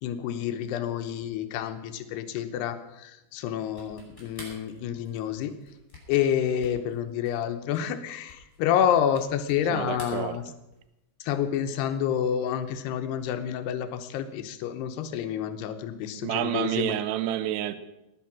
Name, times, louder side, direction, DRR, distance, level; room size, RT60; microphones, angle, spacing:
voice 1, 0.0-5.5 6.1-10.4 11.2-17.0, left 9 dB, 75° left, 2.7 m, -28 dB
sound 1, 3.7-9.7 9.9-10.9, left 1 dB, 15° left, 5.5 m, -49 dB
voice 2, 9.7-10.4 16.2-17.8, right 12 dB, 80° right, 2.6 m, -29 dB
18.5 x 9.4 x 5.9 m
omnidirectional pair, 5.2 m